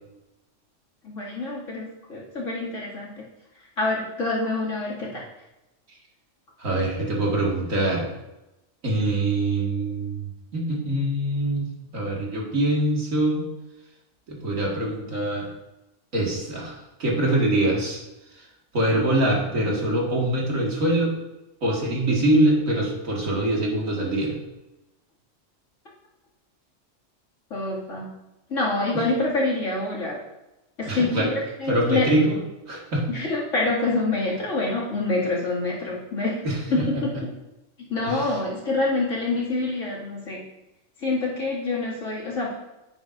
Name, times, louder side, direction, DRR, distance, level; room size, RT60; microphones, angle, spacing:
voice 1, 1.0-3.3 3.8-5.2 27.5-28.1 28.5-30.2 30.8-32.0 33.1-37.1 37.8-40.4 41.0-42.5, left 2 dB, 70° left, -5 dB, 2.7 m, -26 dB
voice 2, 6.6-8.1 8.8-11.7 11.9-13.4 14.3-15.5 16.1-18.0 18.3-18.4 18.7-21.1 21.6-24.4 30.9-31.3 31.7-32.4 32.7-33.0 36.4-36.6 38.0-38.4, right 1 dB, 80° right, -3 dB, 2.4 m, -24 dB
10.0 x 9.0 x 2.6 m, 0.96 s
omnidirectional pair, 1.4 m